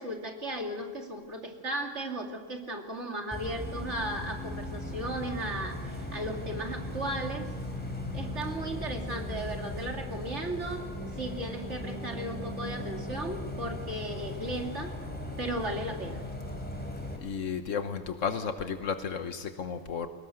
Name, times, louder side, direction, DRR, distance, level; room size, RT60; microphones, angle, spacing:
voice 1, 0.0-7.5 8.1-10.8 11.2-14.9 15.4-16.2, right 1 dB, 65° right, 2 dB, 3.0 m, -36 dB
Bus, 3.3-17.2, left 1 dB, 5° left, 4.0 m, -38 dB
voice 2, 17.2-20.1, left 6 dB, 80° left, 8 dB, 1.4 m, -33 dB
22.0 x 19.0 x 7.9 m, 1.5 s
omnidirectional pair, 1.3 m